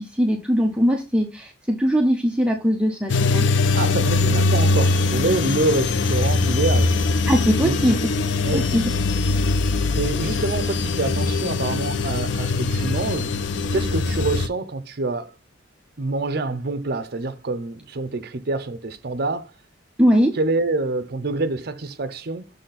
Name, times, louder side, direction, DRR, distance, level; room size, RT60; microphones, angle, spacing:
voice 1, 0.0-3.4 7.3-8.1 8.5-8.9 20.0-20.4, equal, 5° right, 0.6 m, -20 dB
sound 1, 3.1-14.5, left 3 dB, 65° left, 0.4 m, -22 dB
voice 2, 3.7-7.0 7.6-7.9 8.4-8.7 10.0-15.3 16.0-19.5 20.3-22.6, right 2 dB, 55° right, 0.6 m, -26 dB
6.6 x 4.1 x 4.1 m
head